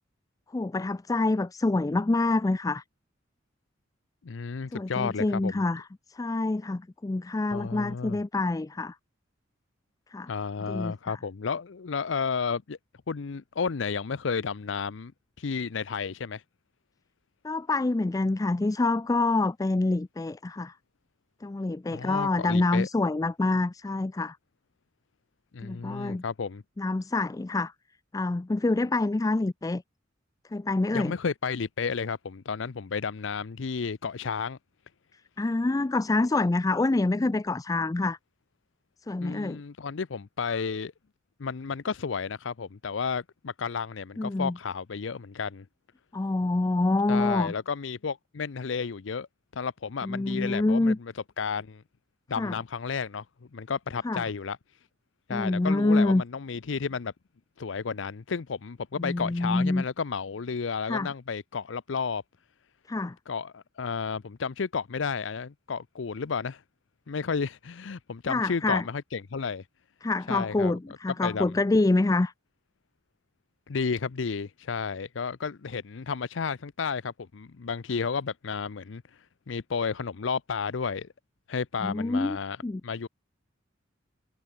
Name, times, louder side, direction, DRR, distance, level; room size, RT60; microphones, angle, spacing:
voice 1, 0.5-2.8 4.7-5.8 6.1-8.9 10.1-10.3 10.7-11.2 17.4-20.7 21.4-24.4 25.6-26.2 26.8-27.7 28.1-29.8 30.5-31.1 35.4-38.2 39.1-39.6 44.2-44.5 46.1-47.5 50.0-51.0 52.4-52.5 54.0-54.2 55.3-56.2 59.0-59.8 60.9-61.1 62.9-63.2 68.3-68.8 70.0-72.3 81.8-82.4 82.6-82.8, left 2 dB, 20° left, 0.4 m, -26 dB
voice 2, 4.2-5.6 7.5-8.2 10.3-12.8 13.1-15.1 15.4-16.4 21.9-22.9 25.5-26.6 30.9-34.6 39.2-40.9 41.4-45.6 47.1-49.3 49.5-51.8 52.3-53.2 53.5-54.6 55.3-57.1 57.6-62.2 63.3-66.6 67.1-69.6 70.3-70.8 71.1-71.5 73.7-79.0 79.5-81.1 81.5-82.6 82.8-83.1, left 5 dB, 75° left, 0.6 m, -32 dB
head